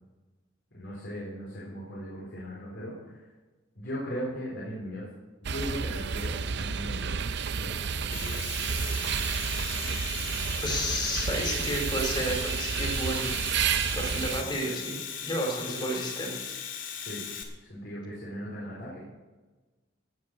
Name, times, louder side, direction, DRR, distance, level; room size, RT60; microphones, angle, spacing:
voice 1, 0.7-3.2 3.8-5.0 5.4-7.2 7.5-8.3 14.1-14.5 17.0-17.2 17.6-19.0, equal, 65° left, -5 dB, 4.2 m, -38 dB
sound 1, 5.4-14.4, right 6 dB, 60° right, 0.6 m, -31 dB
Domestic sounds home sounds, 7.9-17.4, left 7 dB, 85° left, 2.2 m, -38 dB
voice 2, 9.8-10.2 10.6-13.3 13.9-16.5, equal, 25° left, 1 dB, 4.0 m, -32 dB
17.0 x 8.1 x 6.4 m, 1.2 s
head